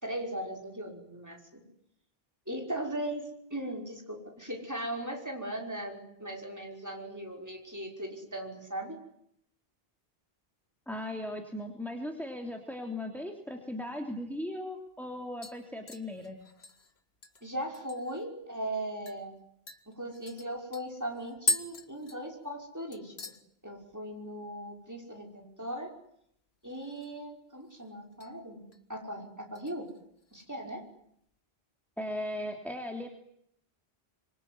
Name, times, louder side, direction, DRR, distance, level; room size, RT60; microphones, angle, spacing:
voice 1, 0.0-1.6 2.5-9.0 17.4-19.3 19.9-23.1 23.6-26.0 26.6-29.9 30.3-30.8, right 1 dB, 15° right, 1 dB, 5.7 m, -38 dB
voice 2, 10.9-16.4 32.0-33.1, left 1 dB, ahead, 2 dB, 3.1 m, -37 dB
sound 1, 14.3-14.4 14.8-15.1 15.4-18.3 18.6-18.7 19.1-19.2 19.7-22.7 22.9-23.4 23.8-24.2 24.4-24.5 26.6-27.3 27.6-28.3 28.7-29.0 29.6-30.5 30.8-30.9, left 2 dB, 90° left, 2.1 m, -39 dB
26.0 x 24.0 x 9.7 m, 0.74 s
omnidirectional pair, 1.0 m